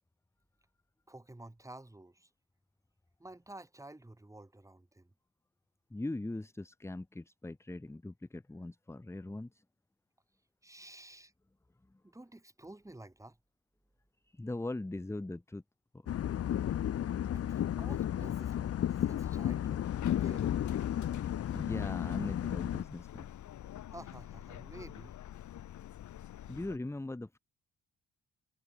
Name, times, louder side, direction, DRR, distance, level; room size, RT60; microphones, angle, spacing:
voice 1, 1.1-2.3 3.2-5.1 10.6-11.3 12.0-13.4 17.3-20.5 23.9-25.2, right 1 dB, 10° right, 3.9 m, -51 dB
voice 2, 5.9-9.6 10.8-10.9 14.3-15.6 21.5-23.3 26.5-27.4, left 2 dB, 10° left, 1.1 m, -40 dB
sound 1, 16.1-22.8, left 10 dB, 50° left, 0.9 m, -33 dB
Subway metro underground, 19.8-26.8, left 12 dB, 75° left, 4.8 m, -45 dB
cardioid pair, 90°, 30 cm